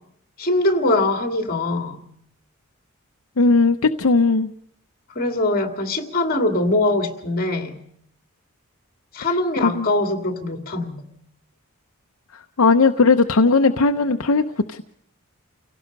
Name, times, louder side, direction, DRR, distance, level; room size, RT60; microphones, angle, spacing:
voice 1, 0.4-2.0 5.1-7.8 9.1-11.0, left 2 dB, 45° left, 6 dB, 2.4 m, -22 dB
voice 2, 3.4-4.5 9.6-9.9 12.3-14.4 14.7-14.8, left 3 dB, 70° left, 6 dB, 0.7 m, -17 dB
29.5 x 17.5 x 5.3 m, 0.71 s
head